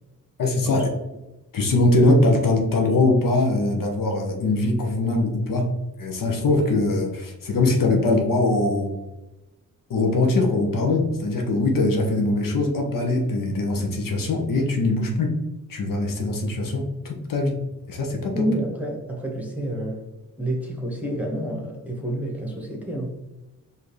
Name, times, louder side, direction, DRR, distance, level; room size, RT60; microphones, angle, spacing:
voice 1, 0.4-0.9 1.5-5.7 6.0-9.0 9.9-15.4 15.7-17.6 17.9-18.4, left 2 dB, 65° left, 2 dB, 0.8 m, -22 dB
voice 2, 18.3-20.0 20.4-23.1, right 1 dB, 5° right, -1 dB, 1.2 m, -29 dB
4.9 x 2.7 x 3.1 m, 0.99 s
cardioid pair, 75°, 36 cm